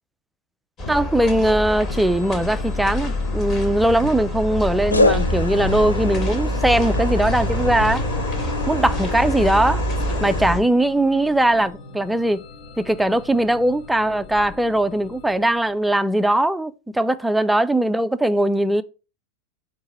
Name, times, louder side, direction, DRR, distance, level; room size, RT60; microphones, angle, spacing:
sound 1, 0.8-10.6, left 1 dB, 25° left, 1.1 m, -26 dB
voice 1, 0.9-8.1 8.7-9.8 10.2-12.4 12.8-18.8, right 1 dB, 5° right, 0.3 m, -20 dB
sound 2, 1.5-16.2, left 4 dB, 45° left, 0.8 m, -42 dB
sound 3, 3.0-3.6 4.9-10.4, left 2 dB, 80° left, 0.4 m, -27 dB
4.5 x 2.6 x 4.3 m
figure-of-eight pair, 90°, 0 cm